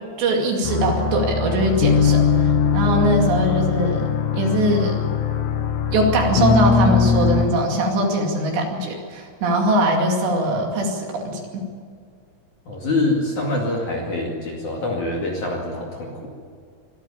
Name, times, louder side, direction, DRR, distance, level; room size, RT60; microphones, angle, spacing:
voice 1, 0.2-4.1 4.3-5.0 5.9-11.6, right 1 dB, 60° right, 1 dB, 4.4 m, -21 dB
sound 1, 0.6-7.5, left 6 dB, 75° left, 3.8 m, -20 dB
voice 2, 12.7-16.3, left 2 dB, 45° left, -1 dB, 3.0 m, -25 dB
24.0 x 13.5 x 8.7 m, 2.1 s
omnidirectional pair, 5.8 m